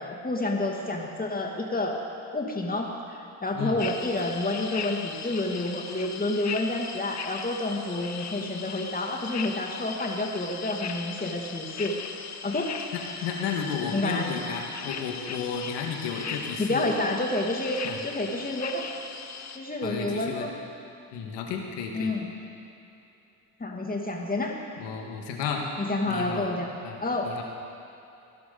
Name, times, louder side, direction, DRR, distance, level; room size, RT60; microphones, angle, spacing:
voice 1, 0.0-1.9 2.3-11.9 12.4-12.7 13.9-14.3 16.6-18.8 19.5-20.5 21.9-22.3 23.6-24.5 25.8-26.7 27.0-27.4, left 2 dB, 20° left, 0 dB, 2.5 m, -29 dB
sound 1, 3.8-19.6, left 6 dB, 35° left, 1.0 m, -38 dB
voice 2, 12.9-16.9 17.8-18.0 19.8-20.5 21.1-22.1 24.8-25.6 26.1-26.5 26.8-27.4, left 6 dB, 70° left, 1 dB, 2.0 m, -33 dB
18.0 x 11.5 x 4.0 m, 2.8 s
hypercardioid pair, 55°, 45 cm